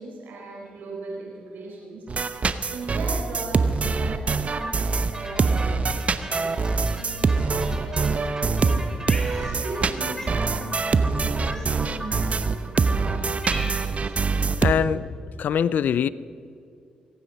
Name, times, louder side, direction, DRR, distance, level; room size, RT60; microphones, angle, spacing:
voice 1, 0.0-2.1 2.4-8.9 9.2-12.8, right 3 dB, 75° right, -2 dB, 4.8 m, -38 dB
sound 1, 2.1-14.7, right 4 dB, 45° right, 0.9 m, -24 dB
sound 2, 4.6-13.2, right 1 dB, 20° right, 3.1 m, -39 dB
Cat, 9.1-9.9 10.2-10.4 11.5-12.0 12.7-12.8 13.1-14.1, left 1 dB, 15° left, 2.9 m, -37 dB
voice 2, 14.6-15.1 15.4-16.1, left 8 dB, 65° left, 19 dB, 0.4 m, -22 dB
24.5 x 9.4 x 5.3 m, 2.4 s
supercardioid pair, 50°, 3 cm